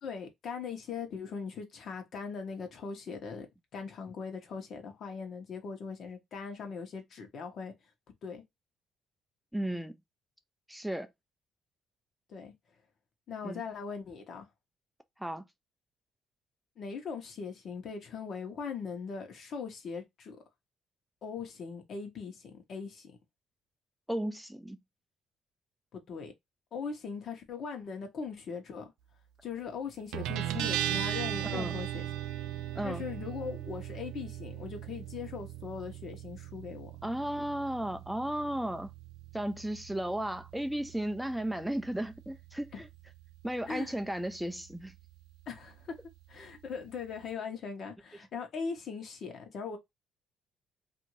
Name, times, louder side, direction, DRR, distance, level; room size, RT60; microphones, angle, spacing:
voice 1, 0.0-3.5 3.7-7.7 8.2-8.4 12.3-12.5 13.3-14.5 16.8-20.4 21.2-23.1 25.9-26.3 26.7-28.9 29.4-32.1 32.8-36.9 42.7-42.8 43.7-43.9 45.5-46.0 46.3-49.8, left 5 dB, 60° left, 1.0 m, -40 dB
voice 2, 9.5-10.0 10.7-11.1 13.4-13.6 15.2-15.4 24.1-24.8 31.4-31.8 32.8-33.0 37.0-38.9 39.3-42.9 43.4-44.9, right 1 dB, 5° right, 0.4 m, -34 dB
Guitar, 30.1-47.3, right 12 dB, 85° right, 0.4 m, -40 dB
2.6 x 2.6 x 3.0 m
cardioid pair, 90°, 0 cm